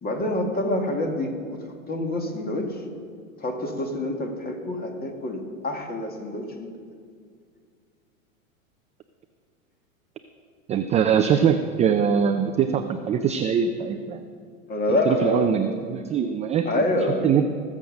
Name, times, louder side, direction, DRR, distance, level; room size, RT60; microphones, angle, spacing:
voice 1, 0.0-1.6 1.9-2.7 3.4-6.7 14.7-15.5 16.7-17.3, left 1 dB, 20° left, 3 dB, 2.2 m, -26 dB
voice 2, 10.7-14.2 15.1-16.8 17.2-17.4, right 7 dB, 15° right, 7 dB, 0.4 m, -22 dB
20.0 x 7.4 x 6.5 m, 2.1 s
hypercardioid pair, 105°, 41 cm